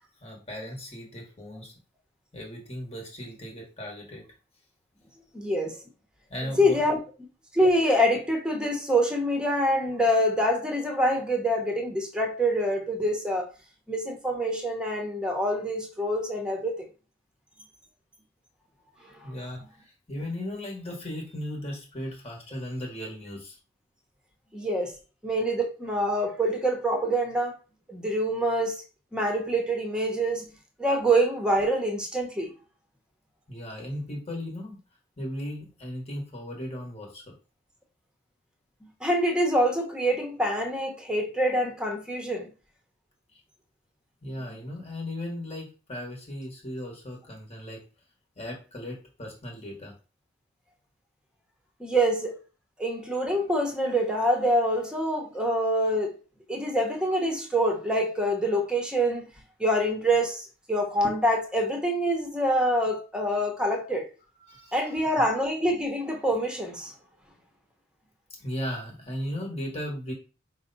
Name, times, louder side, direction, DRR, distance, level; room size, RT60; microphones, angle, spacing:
voice 1, 0.2-1.7 2.3-4.3 6.3-6.8 19.2-23.6 33.5-34.8 35.2-37.3 44.2-47.8 48.4-49.9 64.4-65.2 68.4-70.1, left 1 dB, 35° left, 1.1 m, -37 dB
voice 2, 5.3-5.7 6.6-7.0 7.5-13.5 13.9-16.9 24.5-24.9 25.2-27.6 27.9-28.8 29.1-30.4 30.8-32.5 39.0-42.5 51.8-52.4 52.8-56.1 56.5-59.3 59.6-64.1 64.7-66.9, equal, 5° right, 0.8 m, -25 dB
4.9 x 2.1 x 3.9 m
head